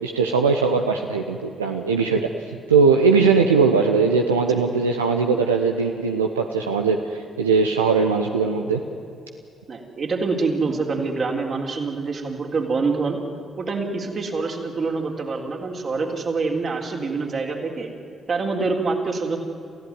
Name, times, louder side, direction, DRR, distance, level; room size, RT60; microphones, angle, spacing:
voice 1, 0.0-2.3 2.7-8.8, right 4 dB, 90° right, 3 dB, 0.9 m, -20 dB
voice 2, 9.7-13.2 13.6-17.9 18.3-19.4, right 4 dB, 50° right, 2 dB, 3.9 m, -25 dB
28.0 x 15.5 x 9.6 m, 2.6 s
hypercardioid pair, 40°, 0 cm